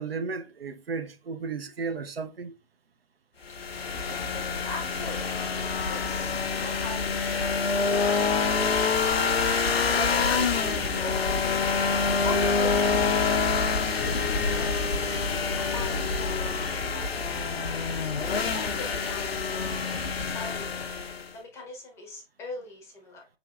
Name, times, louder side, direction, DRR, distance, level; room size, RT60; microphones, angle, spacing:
voice 1, 0.0-2.5, right 4 dB, 75° right, 0.6 m, -34 dB
sound 1, 3.5-21.3, left 5 dB, 85° left, 0.5 m, -26 dB
voice 2, 3.6-5.4 5.9-8.7 9.1-11.6 12.2-13.7 14.0-17.8 18.5-19.8 20.1-20.9 21.3-23.3, left 2 dB, 10° left, 0.6 m, -42 dB
4.9 x 3.4 x 2.2 m
figure-of-eight pair, 130°, 30 cm